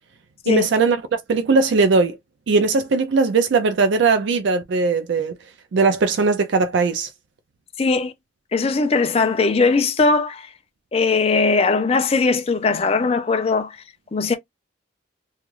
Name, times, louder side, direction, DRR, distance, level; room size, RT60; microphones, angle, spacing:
voice 1, 0.5-1.0 1.3-2.2 2.5-5.3 5.7-7.1, right 4 dB, 65° right, 0.4 m, -19 dB
voice 2, 7.8-8.1 8.5-10.5 10.9-13.8 14.1-14.4, left 4 dB, 30° left, 0.4 m, -19 dB
3.1 x 2.3 x 2.4 m
head